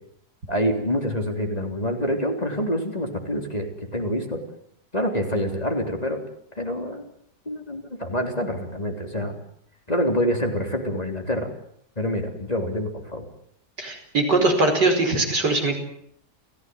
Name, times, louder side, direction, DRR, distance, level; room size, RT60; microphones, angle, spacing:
voice 1, 0.5-4.4 4.9-6.2 6.5-7.0 7.5-9.4 9.9-11.5 12.0-13.3, equal, 20° left, 3 dB, 3.7 m, -26 dB
voice 2, 13.8-15.7, right 2 dB, 85° right, 4 dB, 5.9 m, -21 dB
30.0 x 16.5 x 9.6 m, 0.69 s
omnidirectional pair, 1.8 m